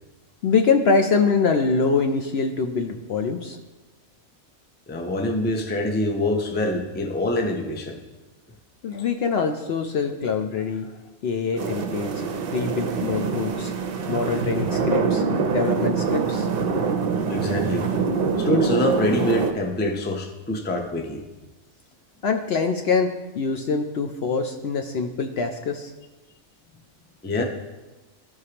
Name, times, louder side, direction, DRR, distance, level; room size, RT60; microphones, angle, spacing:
voice 1, 0.4-3.6 8.8-10.9 11.2-12.1 12.5-13.7 14.0-15.2 15.5-16.5 22.2-25.9, left 4 dB, 60° left, 4 dB, 0.7 m, -24 dB
voice 2, 4.9-8.0 17.3-17.9 18.4-21.2 27.2-27.4, left 1 dB, 15° left, 3 dB, 0.4 m, -25 dB
sound 1, 11.6-19.5, right 5 dB, 55° right, 0.7 m, -25 dB
14.0 x 4.8 x 2.9 m, 1.1 s
omnidirectional pair, 1.4 m